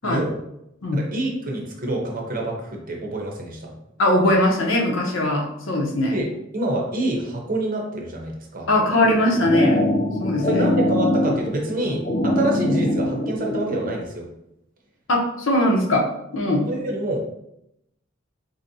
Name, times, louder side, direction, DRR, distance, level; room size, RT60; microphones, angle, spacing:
voice 1, 0.0-0.4 0.9-3.7 6.1-8.7 10.4-14.3 16.7-17.3, right 1 dB, 45° right, 0 dB, 0.7 m, -27 dB
voice 2, 4.0-6.2 8.7-9.8 10.2-10.6 15.1-16.0 16.3-16.7, left 1 dB, 75° left, 0 dB, 0.7 m, -20 dB
sound 1, 9.0-14.0, left 1 dB, 30° left, 0.3 m, -23 dB
4.1 x 2.7 x 2.7 m, 0.81 s
head